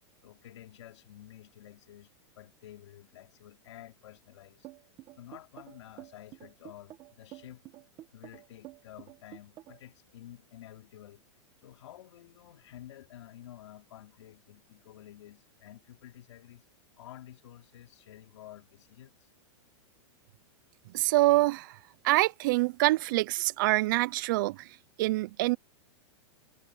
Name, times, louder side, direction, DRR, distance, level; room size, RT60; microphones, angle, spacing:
voice 1, 0.2-4.7 5.2-7.6 8.1-11.2 11.6-16.6 17.0-19.3, left 12 dB, 75° left, 2.8 m, -51 dB
sound 1, 4.6-9.9, right 16 dB, 25° right, 1.1 m, -49 dB
voice 2, 20.9-21.8 22.0-24.7 25.0-25.6, right 19 dB, 45° right, 0.4 m, -25 dB
supercardioid pair, 160°, 15 cm